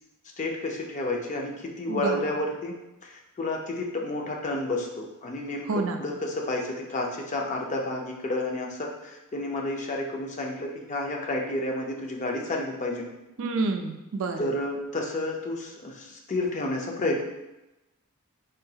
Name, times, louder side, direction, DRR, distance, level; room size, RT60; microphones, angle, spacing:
voice 1, 0.4-2.8 3.0-13.1 14.4-17.2, left 2 dB, 35° left, 1 dB, 0.4 m, -30 dB
voice 2, 1.9-2.2 5.7-6.0 13.4-14.5, right 3 dB, 65° right, 5 dB, 0.4 m, -28 dB
3.7 x 2.3 x 2.7 m, 0.98 s
head